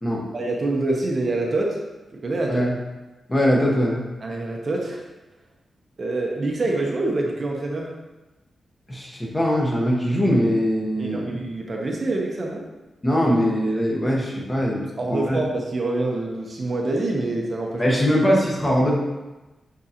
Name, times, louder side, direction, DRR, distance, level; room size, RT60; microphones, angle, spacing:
voice 1, 0.3-1.8 2.1-2.7 4.2-5.0 6.0-7.9 11.0-12.6 15.0-18.0, right 2 dB, 40° right, -1 dB, 0.8 m, -26 dB
voice 2, 3.3-4.0 8.9-11.4 13.0-15.4 17.8-18.9, equal, 20° left, -3 dB, 1.1 m, -21 dB
8.5 x 3.9 x 2.9 m, 1.1 s
wide cardioid pair, 165°, 0 cm